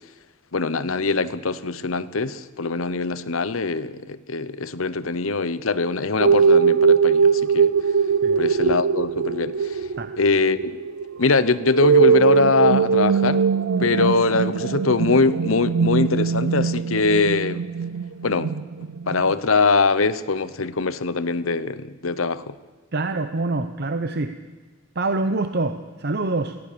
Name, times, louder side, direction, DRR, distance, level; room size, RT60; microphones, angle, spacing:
voice 1, 0.5-7.7 8.4-9.9 10.2-10.8 11.2-13.5 13.8-17.6 18.2-18.5 18.8-22.6, left 3 dB, 85° left, 1.0 m, -22 dB
sound 1, 6.2-19.3, right 6 dB, 85° right, 0.5 m, -21 dB
voice 2, 22.9-24.3 24.9-26.6, right 2 dB, 50° right, 0.9 m, -25 dB
23.5 x 17.0 x 6.9 m
head